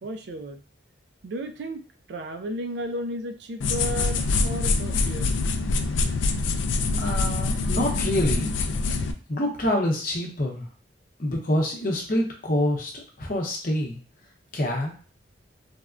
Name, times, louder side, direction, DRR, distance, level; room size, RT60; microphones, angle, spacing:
voice 1, 0.0-0.6 1.2-1.8 2.1-5.4, equal, 65° right, 6 dB, 0.4 m, -33 dB
sound 1, 3.6-9.1, left 3 dB, 85° left, 0.3 m, -25 dB
voice 2, 7.0-8.5 9.3-10.7 11.2-14.0 14.5-14.9, left 1 dB, 50° left, 0 dB, 0.7 m, -26 dB
3.4 x 2.1 x 2.4 m, 0.40 s
head